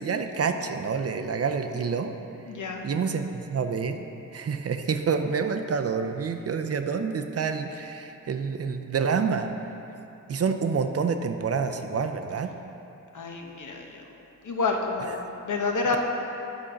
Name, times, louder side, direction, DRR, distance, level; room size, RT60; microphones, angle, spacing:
voice 1, 0.0-2.1 2.8-4.1 4.3-9.5 10.3-12.5, right 5 dB, 50° right, 7 dB, 0.5 m, -28 dB
voice 2, 2.5-2.8 13.1-14.0 14.4-15.2 15.4-16.0, left 4 dB, 65° left, 2 dB, 0.9 m, -28 dB
8.7 x 4.4 x 5.1 m, 2.8 s
cardioid pair, 65°, 32 cm